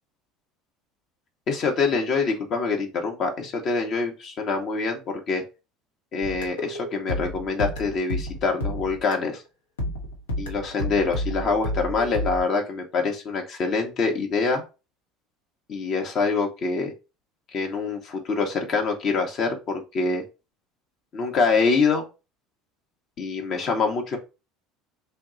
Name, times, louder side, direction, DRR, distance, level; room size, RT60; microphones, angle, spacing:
voice 1, 1.5-5.4 6.1-9.4 10.4-14.6 15.7-16.9 17.5-20.2 21.1-22.0 23.2-24.2, left 4 dB, 40° left, 2 dB, 0.7 m, -25 dB
sound 1, 6.2-9.4 9.8-12.4, equal, 75° left, 0.7 m, -31 dB
3.0 x 2.2 x 3.7 m, 0.29 s
figure-of-eight pair, 65°, 0 cm